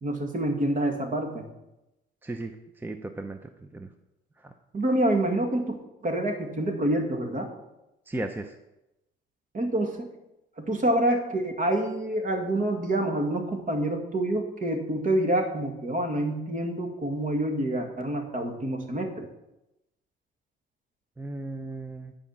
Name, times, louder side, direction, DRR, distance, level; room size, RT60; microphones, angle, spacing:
voice 1, 0.0-1.5 4.7-5.8 6.0-7.5 9.5-10.1 10.6-19.3, right 1 dB, 40° right, 4 dB, 2.1 m, -27 dB
voice 2, 2.2-3.4 3.7-3.9 4.4-4.5 8.1-8.5 21.2-22.1, right 2 dB, 10° right, 7 dB, 0.7 m, -35 dB
10.5 x 5.1 x 7.3 m, 0.92 s
cardioid pair, 90°, 20 cm